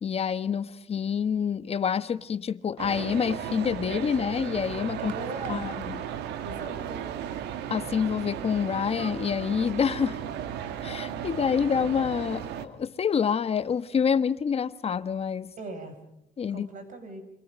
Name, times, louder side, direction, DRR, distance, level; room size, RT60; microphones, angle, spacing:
voice 1, 0.0-5.1 5.5-6.0 7.7-10.2 10.8-15.5 16.4-16.7, left 7 dB, 35° left, 1.2 m, -27 dB
sound 1, 2.8-12.7, right 9 dB, 85° right, 2.0 m, -35 dB
voice 2, 5.0-5.7 6.4-7.0 15.6-16.0 16.5-17.2, right 3 dB, 50° right, 6.8 m, -38 dB
29.5 x 26.0 x 5.1 m
cardioid pair, 110°, 17 cm